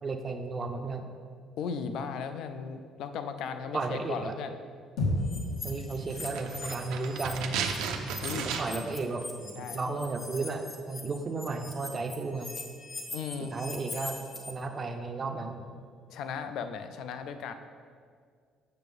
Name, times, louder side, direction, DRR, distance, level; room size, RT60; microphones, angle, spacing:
voice 1, 0.0-1.1 3.7-4.4 5.6-7.6 8.3-12.5 13.5-14.2 14.5-15.6, right 3 dB, 25° right, 5 dB, 0.5 m, -34 dB
voice 2, 1.6-4.6 8.2-8.5 9.5-10.1 13.1-13.6 16.1-17.5, left 6 dB, 60° left, 9 dB, 0.4 m, -36 dB
sound 1, 5.0-9.3, left 1 dB, 85° left, 1.8 m, -36 dB
sound 2, 5.2-7.3 7.6-14.5, left 3 dB, 30° left, 0.8 m, -42 dB
sound 3, 6.1-9.0 9.2-9.3, right 6 dB, 75° right, 0.6 m, -34 dB
7.9 x 6.6 x 3.6 m, 2.1 s
cardioid pair, 175°, 0 cm